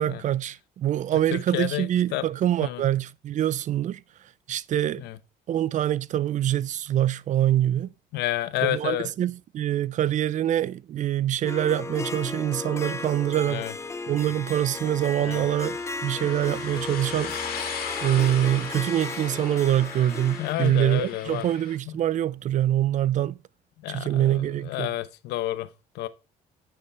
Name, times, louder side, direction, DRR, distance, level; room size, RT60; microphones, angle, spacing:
voice 1, 0.0-4.0 4.5-5.0 5.5-7.9 8.6-13.6 14.1-17.3 18.0-23.4 23.9-24.9, right 12 dB, 45° right, 0.4 m, -25 dB
voice 2, 1.3-2.2 2.6-2.8 5.0-5.2 8.1-9.1 13.5-13.7 15.2-15.5 20.4-21.5 21.9-22.0 23.8-25.7 25.9-26.1, left 15 dB, 85° left, 0.8 m, -30 dB
Harp, 11.5-20.6, left 3 dB, 15° left, 0.5 m, -35 dB
sound 1, 13.6-21.8, left 6 dB, 60° left, 2.6 m, -38 dB
9.9 x 6.8 x 3.4 m
cardioid pair, 110°, 17 cm